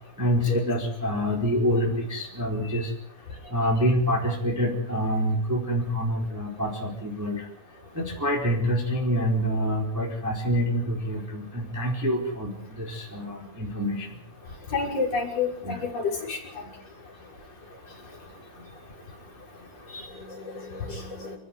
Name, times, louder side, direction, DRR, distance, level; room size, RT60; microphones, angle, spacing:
voice 1, 0.2-2.9 3.5-7.5 7.9-14.2 15.6-15.8, equal, 5° right, -1 dB, 3.9 m, -26 dB
voice 2, 14.7-16.4 19.9-20.0 20.9-21.3, left 4 dB, 30° left, -2 dB, 6.7 m, -29 dB
29.0 x 14.0 x 9.3 m, 0.63 s
omnidirectional pair, 5.8 m